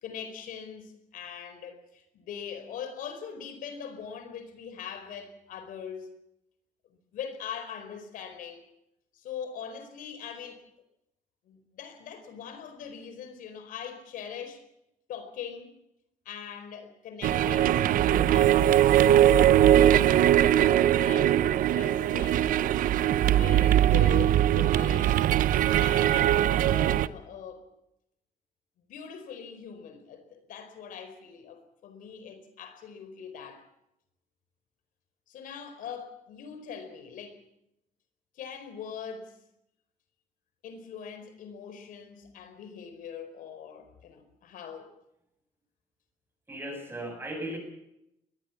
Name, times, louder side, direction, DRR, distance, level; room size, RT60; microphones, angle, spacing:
voice 1, 0.0-6.1 7.1-8.7 9.1-10.6 11.4-14.6 15.1-15.8 16.2-18.7 19.2-20.2 20.5-22.6 23.2-27.7 28.9-33.6 35.3-37.4 38.3-39.4 40.6-45.0, left 7 dB, 90° left, 4.7 m, -42 dB
sound 1, 17.2-27.1, right 12 dB, 90° right, 0.8 m, -21 dB
voice 2, 46.5-47.6, right 1 dB, 15° right, 7.9 m, -36 dB
22.0 x 20.5 x 7.3 m
cardioid pair, 135°, 14 cm